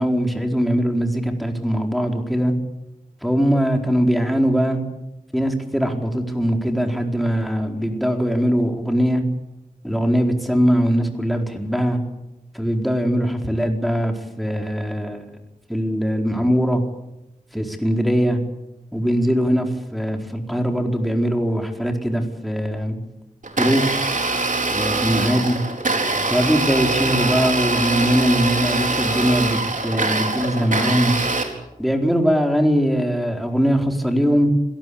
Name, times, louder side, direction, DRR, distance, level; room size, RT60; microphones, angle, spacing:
voice 1, 0.0-2.5 3.2-4.8 5.3-9.2 9.8-12.0 12.5-15.3 15.7-16.8 17.5-18.4 18.9-23.0 23.6-23.9 24.7-25.6 26.3-31.2 31.8-34.5, equal, ahead, 3 dB, 4.4 m, -21 dB
Domestic sounds home sounds, 23.4-31.4, right 3 dB, 65° right, 4.5 m, -23 dB
26.5 x 18.0 x 8.6 m, 0.91 s
wide cardioid pair, 60°, 14 cm